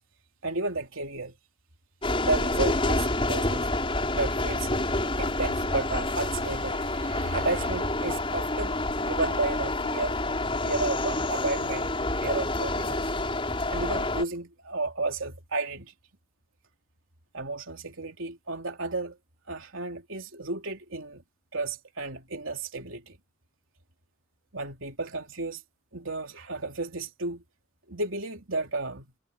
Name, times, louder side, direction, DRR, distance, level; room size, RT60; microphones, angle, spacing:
voice 1, 0.4-1.3 2.2-3.7 4.1-4.7 5.2-8.7 9.0-10.1 10.6-11.9 12.2-13.1 13.7-15.9 17.3-19.2 19.5-21.2 21.5-23.2 24.5-25.6 25.9-27.4 27.9-29.1, right 3 dB, 75° right, 3.4 m, -32 dB
sound 1, 2.0-14.2, left 2 dB, 25° left, 5.7 m, -28 dB
head